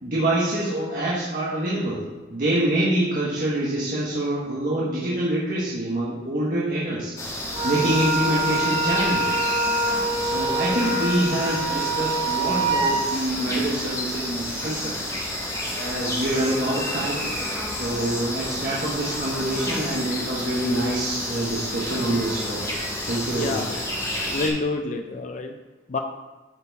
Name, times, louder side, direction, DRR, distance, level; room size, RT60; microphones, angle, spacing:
voice 1, 0.0-2.0 2.3-7.1 7.6-9.3 10.2-15.2 15.7-17.2 17.8-22.8 23.0-23.8, right 1 dB, 50° right, -6 dB, 1.3 m, -26 dB
sound 1, 7.2-24.5, left 1 dB, 20° left, 1.5 m, -30 dB
Wind instrument woodwind instrument, 7.5-13.0, right 2 dB, 30° right, 0.9 m, -25 dB
voice 2, 23.4-23.8 24.3-25.6 25.9-26.0, left 3 dB, 40° left, 5 dB, 0.5 m, -28 dB
10.5 x 4.5 x 4.0 m, 1.2 s
head